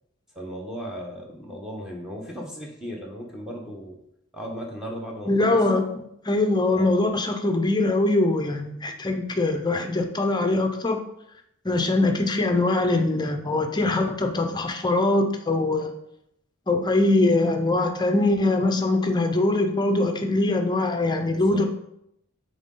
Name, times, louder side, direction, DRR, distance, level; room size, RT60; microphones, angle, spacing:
voice 1, 0.3-4.0 4.3-5.6 6.7-7.0 21.2-21.6, equal, 5° right, -3 dB, 0.9 m, -36 dB
voice 2, 5.3-11.0 11.6-15.9 16.7-21.6, left 2 dB, 20° left, 5 dB, 0.6 m, -22 dB
8.0 x 3.7 x 3.8 m, 0.77 s
head